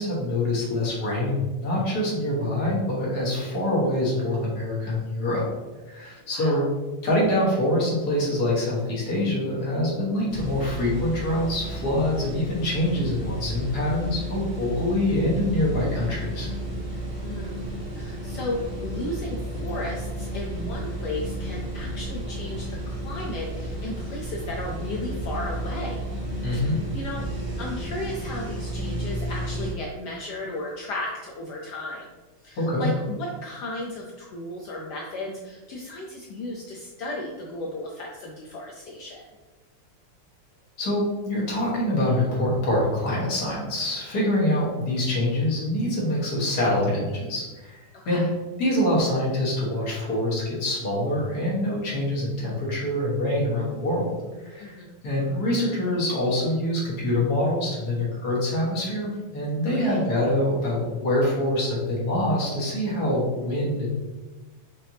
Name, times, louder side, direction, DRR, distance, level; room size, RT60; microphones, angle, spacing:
voice 1, 0.0-5.4 5.9-6.6 7.0-16.5 26.4-26.8 32.6-32.9 40.8-47.8 48.0-48.3 48.6-54.1 54.4-54.8 55.0-63.9, left 1 dB, 50° left, -5 dB, 1.6 m, -25 dB
voice 2, 6.3-6.6 17.1-17.7 17.9-26.0 26.9-27.2 27.6-32.1 32.4-39.2 44.4-44.7 48.0-48.3 54.6-55.0 59.7-60.0, left 1 dB, 85° left, -2 dB, 0.9 m, -35 dB
sound 1, 10.3-29.7, right 1 dB, 50° right, 2.1 m, -32 dB
5.7 x 3.3 x 2.7 m, 1.2 s
omnidirectional pair, 2.4 m